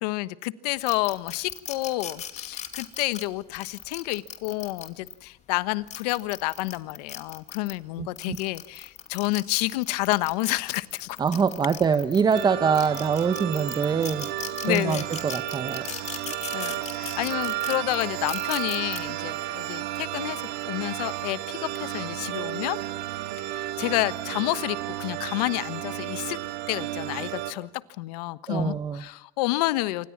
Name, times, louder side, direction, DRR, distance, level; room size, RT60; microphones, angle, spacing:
voice 1, 0.0-11.2 14.6-15.0 16.0-16.1 16.5-22.8 23.5-26.4 26.7-27.7 28.0-30.1, left 19 dB, 70° left, 16 dB, 1.3 m, -29 dB
sound 1, 0.9-5.1 5.7-7.8 8.2-12.4 12.7-19.0, left 9 dB, 35° left, 2.7 m, -38 dB
voice 2, 8.0-8.4 11.2-14.3 14.7-15.8 28.5-29.0, right 6 dB, 20° right, 11 dB, 1.1 m, -24 dB
sound 2, 12.3-27.5, right 14 dB, 55° right, 2.3 m, -33 dB
27.5 x 24.5 x 7.4 m, 0.75 s
supercardioid pair, 115°, 21 cm